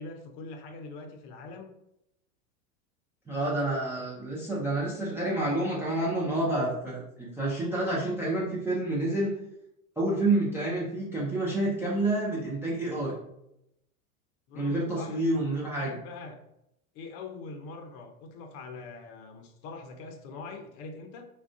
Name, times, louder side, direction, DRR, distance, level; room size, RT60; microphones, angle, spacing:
voice 1, 0.0-1.8 14.5-15.2 15.7-16.4 16.9-21.3, left 3 dB, 45° left, 4 dB, 0.6 m, -43 dB
voice 2, 3.3-9.3 10.0-13.2 14.5-15.9, right 2 dB, 5° right, -6 dB, 0.4 m, -28 dB
2.3 x 2.2 x 3.4 m, 0.80 s
hypercardioid pair, 90°, 45 cm